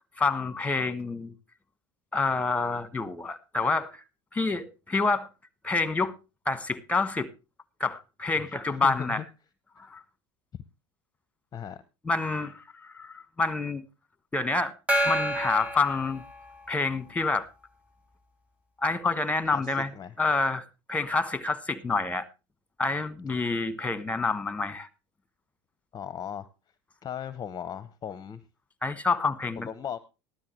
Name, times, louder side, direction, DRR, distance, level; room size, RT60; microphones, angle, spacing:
voice 1, 0.2-1.3 2.1-3.9 4.3-5.3 5.6-6.1 6.4-7.3 7.8-9.2 9.9-10.0 12.0-13.8 14.3-14.7 15.0-16.2 16.7-17.5 18.8-19.9 20.2-20.6 20.9-22.2 22.8-24.9 28.8-29.7, left 3 dB, 10° left, 1.3 m, -27 dB
voice 2, 8.8-9.2 10.5-10.6 11.5-11.8 19.5-20.1 25.9-26.5 27.0-28.4 29.6-30.0, left 8 dB, 30° left, 0.7 m, -37 dB
Gong, 14.9-16.9, right 1 dB, 10° right, 2.3 m, -29 dB
14.5 x 12.5 x 3.1 m
hypercardioid pair, 85°, 14 cm